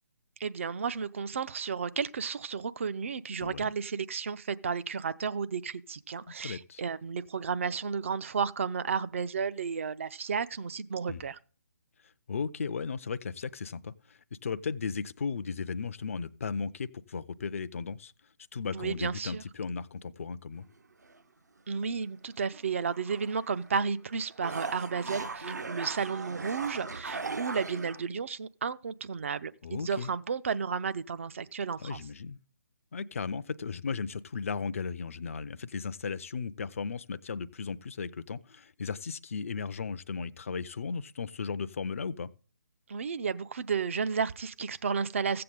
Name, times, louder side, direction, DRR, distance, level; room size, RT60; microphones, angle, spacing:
voice 1, 0.4-11.4 18.7-19.4 21.7-32.0 42.9-45.4, right 6 dB, 45° right, 0.5 m, -33 dB
voice 2, 3.4-3.7 6.4-6.8 11.1-11.2 12.3-18.1 18.5-20.7 29.6-30.1 31.8-32.4 32.9-42.3, left 5 dB, 50° left, 0.5 m, -36 dB
sound 1, 20.5-21.2 21.8-21.9 22.8-23.8 24.1-28.0, right 4 dB, 65° right, 0.9 m, -39 dB
15.0 x 7.7 x 3.7 m
figure-of-eight pair, 140°, 10 cm